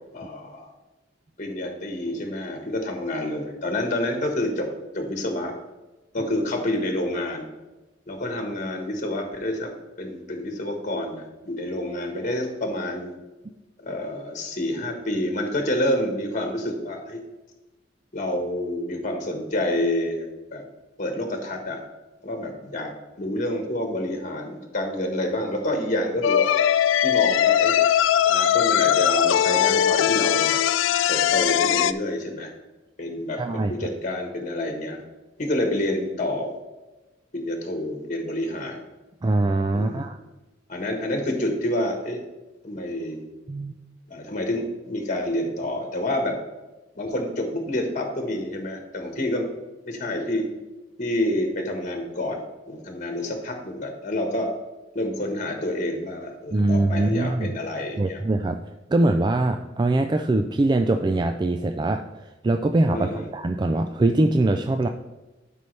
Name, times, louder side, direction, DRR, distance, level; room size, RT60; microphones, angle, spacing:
voice 1, 0.1-0.7 1.4-4.7 4.9-5.5 6.1-7.5 8.1-9.7 10.0-13.1 13.8-17.2 18.1-20.2 20.5-20.6 21.0-21.8 22.2-22.9 23.2-26.5 27.0-27.8 28.2-30.6 31.1-32.5 33.0-35.0 35.4-36.6 37.3-38.8 39.7-40.1 40.7-42.2 42.6-43.2 44.1-46.4 47.0-49.5 49.9-50.5 51.0-54.5 54.9-58.2 62.9-63.3, left 1 dB, 40° left, 3 dB, 1.3 m, -28 dB
sound 1, 26.2-31.9, left 10 dB, 80° left, 0.3 m, -20 dB
voice 2, 33.4-33.7 39.2-40.2 43.5-43.7 56.5-57.6 58.0-58.6 58.9-64.9, right 2 dB, 25° right, 7 dB, 0.3 m, -22 dB
12.0 x 5.4 x 3.3 m, 1.1 s
head